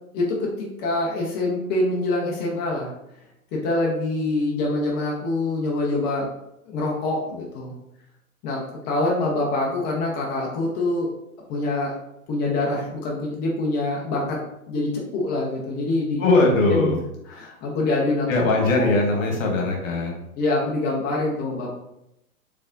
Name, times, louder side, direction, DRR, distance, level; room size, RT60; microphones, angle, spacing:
voice 1, 0.1-2.9 3.5-6.3 6.7-7.7 8.4-11.1 11.5-12.0 12.3-14.4 14.7-16.2 16.7-17.0 17.3-18.3 18.7-18.9 19.2-19.3 20.4-21.7, left 2 dB, 25° left, -3 dB, 0.7 m, -25 dB
voice 2, 16.2-17.0 18.3-20.2, left 2 dB, 60° left, 1 dB, 1.3 m, -20 dB
4.1 x 3.4 x 2.5 m, 0.82 s
hypercardioid pair, 125°, 44 cm